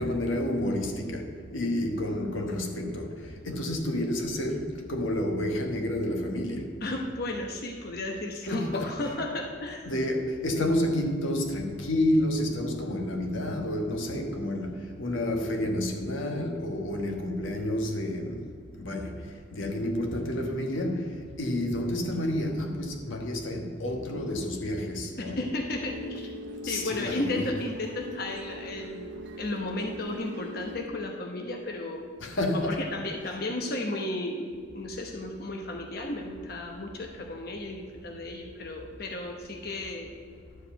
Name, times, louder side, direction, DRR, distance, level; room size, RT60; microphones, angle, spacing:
voice 1, 0.0-3.1 3.4-6.7 8.5-8.9 9.8-18.4 18.8-19.1 19.5-21.1 21.4-25.4 26.6-27.5 32.2-32.9, left 1 dB, 90° left, 1.4 m, -29 dB
voice 2, 6.8-9.9 25.4-26.3 26.7-32.0 32.5-40.1, left 2 dB, 50° left, 1.0 m, -34 dB
sound 1, 25.8-30.9, left 1 dB, 65° right, 0.7 m, -41 dB
11.5 x 4.9 x 7.7 m
head